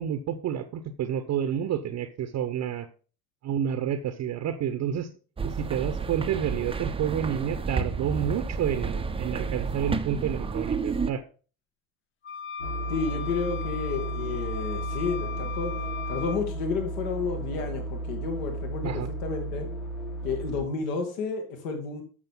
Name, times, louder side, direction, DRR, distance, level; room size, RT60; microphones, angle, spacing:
voice 1, 0.0-2.9 3.4-5.1 5.4-11.2 18.8-19.1, right 9 dB, 40° right, 10 dB, 1.0 m, -29 dB
sound 1, 5.4-11.1, right 4 dB, 15° right, 0.8 m, -31 dB
sound 2, 12.2-16.4, left 8 dB, 30° left, 0.6 m, -37 dB
sound 3, 12.6-20.6, right 2 dB, 85° left, 3.8 m, -34 dB
voice 2, 12.9-15.7 16.1-19.7 20.2-22.0, left 5 dB, 65° left, 4 dB, 2.4 m, -31 dB
12.5 x 6.8 x 3.9 m, 0.38 s
figure-of-eight pair, 65°, 43 cm